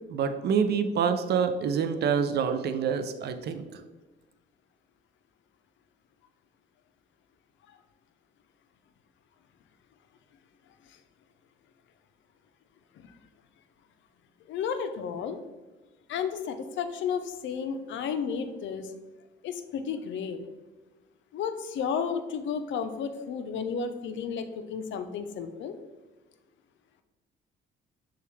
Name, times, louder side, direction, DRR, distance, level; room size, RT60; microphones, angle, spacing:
voice 1, 0.1-3.8, right 6 dB, 55° right, 8 dB, 0.5 m, -27 dB
voice 2, 14.5-15.4 16.1-18.9 19.4-20.4 21.3-25.8, left 6 dB, 70° left, 8 dB, 0.5 m, -32 dB
6.7 x 2.4 x 3.1 m, 1.2 s
cardioid pair, 90°, 20 cm